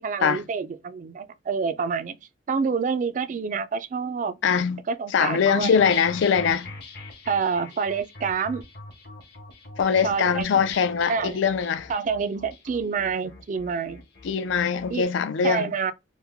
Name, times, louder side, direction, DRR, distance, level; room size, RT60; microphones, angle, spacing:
voice 1, 0.0-2.2 2.5-4.3 4.9-5.7 7.3-8.6 10.0-10.5 11.1-11.4 11.9-14.0 14.9-15.1 15.4-15.9, right 5 dB, 45° right, 0.3 m, -27 dB
voice 2, 4.4-4.8 5.1-6.7 9.8-11.9 14.2-15.7, left 6 dB, 85° left, 0.4 m, -22 dB
sound 1, 5.5-14.9, left 4 dB, 60° left, 0.9 m, -42 dB
3.1 x 2.1 x 3.5 m
head